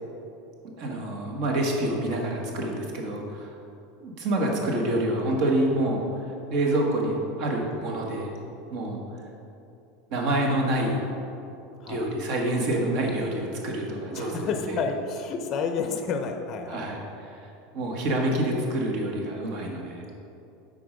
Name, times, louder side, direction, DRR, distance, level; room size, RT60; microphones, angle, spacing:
voice 1, 0.8-3.5 4.0-6.2 6.5-8.3 8.7-9.0 10.1-11.0 11.9-14.8 16.7-17.4 17.7-20.1, right 1 dB, 50° right, 0 dB, 1.4 m, -27 dB
voice 2, 14.1-16.8, left 5 dB, 35° left, 5 dB, 0.6 m, -30 dB
8.1 x 5.4 x 5.2 m, 2.8 s
supercardioid pair, 165°, 0 cm